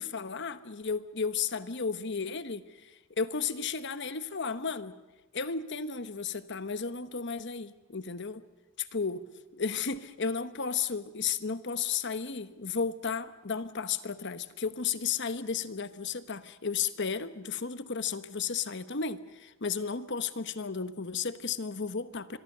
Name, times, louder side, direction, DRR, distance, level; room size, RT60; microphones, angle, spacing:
voice 1, 0.0-4.9 5.3-8.4 8.8-9.2 9.5-22.4, left 5 dB, 50° left, 13 dB, 1.0 m, -33 dB
25.0 x 23.0 x 6.7 m, 1.1 s
head